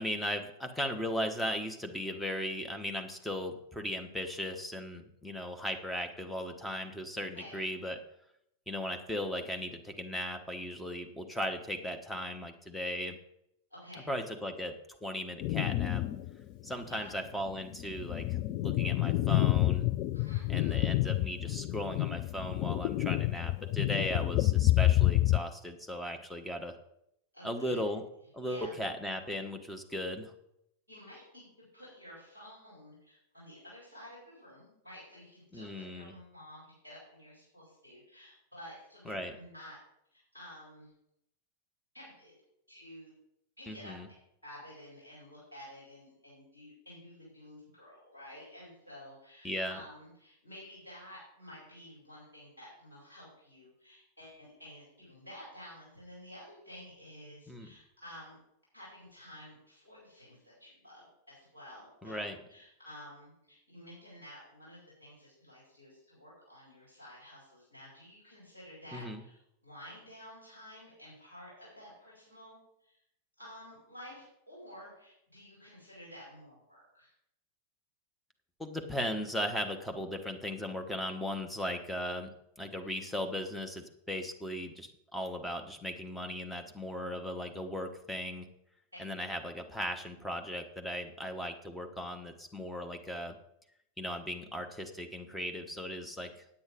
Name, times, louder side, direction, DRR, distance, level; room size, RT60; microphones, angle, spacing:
voice 1, 0.0-8.0 8.7-13.2 14.1-16.0 16.6-19.9 20.5-26.8 27.4-28.0 28.3-30.3 35.5-36.1 39.1-39.3 43.7-44.1 49.4-49.8 57.5-57.7 62.0-62.4 68.9-69.2 78.6-82.3 82.6-88.5 89.0-93.4 94.0-96.3, equal, 5° left, 5 dB, 1.2 m, -37 dB
voice 2, 13.7-14.1 16.9-17.2 20.1-20.9 27.3-27.9 28.4-28.8 30.9-31.5 31.7-39.8 40.1-40.9 41.9-42.3 42.7-43.1 43.6-44.0 44.4-58.4 58.7-73.0 73.4-77.1, equal, 80° left, -6 dB, 4.9 m, -51 dB
sound 1, 15.4-16.3 16.7-16.8 17.5-25.4, left 15 dB, 40° left, 0.4 m, -28 dB
8.6 x 8.6 x 5.2 m, 0.77 s
figure-of-eight pair, 90°, 0 cm